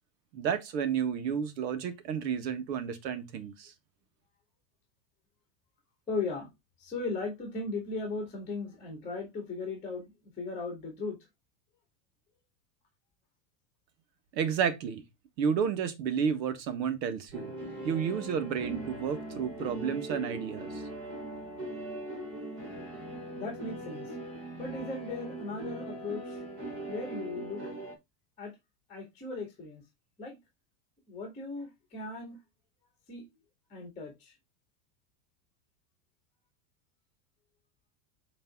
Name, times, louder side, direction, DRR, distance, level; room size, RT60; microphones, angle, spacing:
voice 1, 0.3-3.7 14.3-15.0 15.4-17.5 17.8-20.8, right 7 dB, 80° right, 1.7 m, -31 dB
voice 2, 6.1-6.5 6.8-11.2 23.4-24.1 24.6-26.4 26.9-27.7 28.4-28.6 28.9-29.8 30.2-30.4 31.1-32.4 33.1-33.3 33.7-34.3, left 3 dB, 15° left, 2.3 m, -37 dB
sound 1, 17.3-28.0, right 1 dB, 25° right, 2.8 m, -40 dB
8.3 x 3.4 x 3.8 m
supercardioid pair, 170°, 49 cm